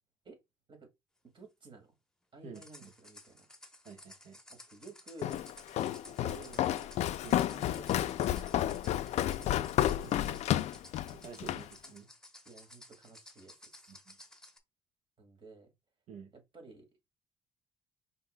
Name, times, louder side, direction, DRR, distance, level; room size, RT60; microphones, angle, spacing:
voice 1, 1.3-1.9 2.3-3.5 4.5-5.4 6.0-9.4 11.5-11.7 12.5-14.0 15.2-15.7 16.3-16.9, right 4 dB, 45° right, 2.1 m, -54 dB
voice 2, 2.4-2.9 3.8-4.4 7.2-7.5 9.8-10.4 11.1-12.1 13.9-14.2 16.1-16.3, right 5 dB, 75° right, 1.2 m, -49 dB
sound 1, 2.5-14.6, left 1 dB, 5° left, 1.0 m, -55 dB
Walk footsteps, 5.2-11.7, left 12 dB, 70° left, 0.4 m, -31 dB
5.4 x 3.9 x 2.2 m
cardioid pair, 100°, 12 cm